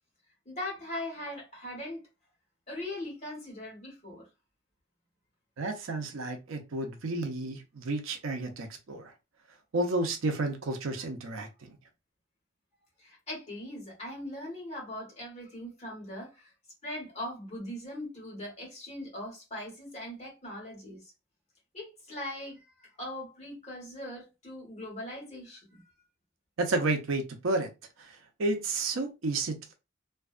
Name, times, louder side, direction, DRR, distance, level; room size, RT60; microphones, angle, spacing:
voice 1, 0.4-2.0 2.7-4.3 13.0-16.5 16.8-21.0 21.7-25.8, left 1 dB, 35° left, 1.3 m, -40 dB
voice 2, 5.6-9.1 9.7-11.8 26.6-27.7 28.0-28.1 28.4-29.7, right 2 dB, 85° right, 0.6 m, -31 dB
2.5 x 2.2 x 2.4 m
head